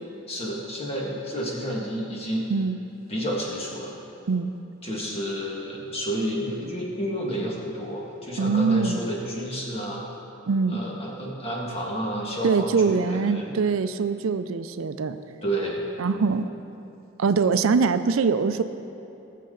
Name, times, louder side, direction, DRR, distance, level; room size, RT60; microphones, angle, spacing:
voice 1, 0.3-2.5 3.1-3.9 4.8-10.2 10.7-13.5 15.4-15.8, equal, 30° left, -3 dB, 1.8 m, -30 dB
voice 2, 8.4-9.0 10.5-10.8 12.4-15.2 16.0-16.4 17.2-18.6, right 5 dB, 85° right, 11 dB, 0.5 m, -23 dB
19.0 x 7.4 x 3.9 m, 2.9 s
head